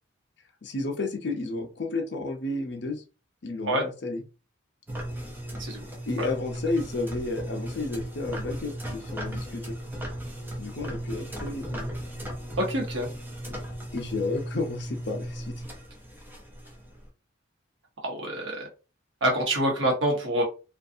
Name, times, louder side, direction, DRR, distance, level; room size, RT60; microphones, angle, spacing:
voice 1, 0.6-3.0 3.4-4.2 6.1-9.8 10.6-11.9 13.9-15.5, left 3 dB, 55° left, 3 dB, 0.5 m, -32 dB
sound 1, 4.9-17.1, right 1 dB, 10° right, 0.5 m, -36 dB
voice 2, 12.6-13.1 18.0-18.7 19.2-20.4, right 1 dB, 70° right, 0 dB, 1.0 m, -26 dB
2.5 x 2.3 x 2.6 m, 0.32 s
head